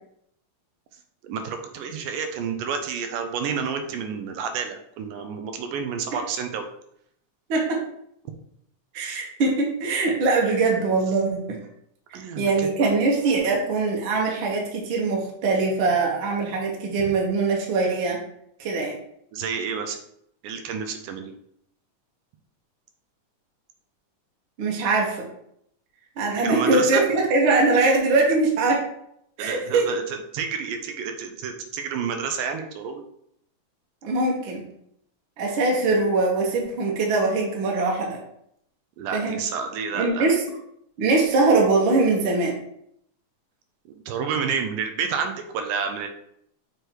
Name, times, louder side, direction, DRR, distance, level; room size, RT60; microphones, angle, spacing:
voice 1, 1.2-6.7 12.1-12.7 17.0-17.1 19.3-20.0 20.4-21.3 26.4-27.0 29.4-33.0 39.0-40.3 43.9-46.1, right 6 dB, 85° right, 6 dB, 2.3 m, -30 dB
voice 2, 7.5-7.8 8.9-11.6 12.1-18.2 18.6-18.9 24.6-25.3 26.2-28.8 29.4-29.9 34.0-34.7 35.4-38.2 39.1-39.4 39.9-40.4 41.0-42.6, right 3 dB, 65° right, -1 dB, 1.3 m, -22 dB
6.2 x 3.3 x 4.5 m, 0.72 s
omnidirectional pair, 3.8 m